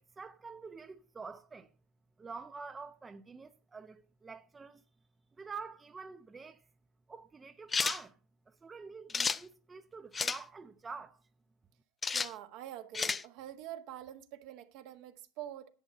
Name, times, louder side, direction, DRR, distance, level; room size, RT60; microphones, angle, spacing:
voice 1, 0.0-1.7 2.2-4.8 5.4-6.6 7.1-8.1 8.5-11.2, right 4 dB, 20° right, 0.7 m, -47 dB
sound 1, 7.7-8.0 9.1-9.4 10.1-10.4 12.0-12.3 12.9-13.2, left 5 dB, 20° left, 0.5 m, -31 dB
voice 2, 12.1-15.7, right 12 dB, 60° right, 1.4 m, -46 dB
11.0 x 8.1 x 5.6 m
hypercardioid pair, 85°, 0 cm